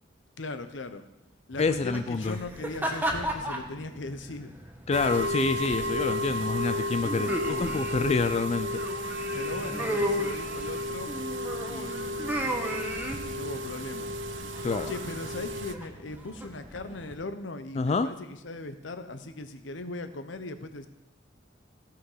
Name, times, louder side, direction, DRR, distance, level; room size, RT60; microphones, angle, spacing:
voice 1, 0.4-1.0 1.5-4.5 9.3-11.1 11.7-12.7 13.2-14.1 14.9-20.9, left 2 dB, 80° left, 10 dB, 0.9 m, -39 dB
sound 1, 1.5-17.1, equal, 10° right, 1.2 m, -36 dB
voice 2, 1.6-2.4 4.9-9.1 14.6-14.9 17.8-18.1, left 4 dB, 35° left, 10 dB, 0.4 m, -27 dB
sound 2, 4.9-15.7, left 1 dB, 70° right, 0.6 m, -33 dB
16.0 x 5.8 x 5.6 m, 0.94 s
head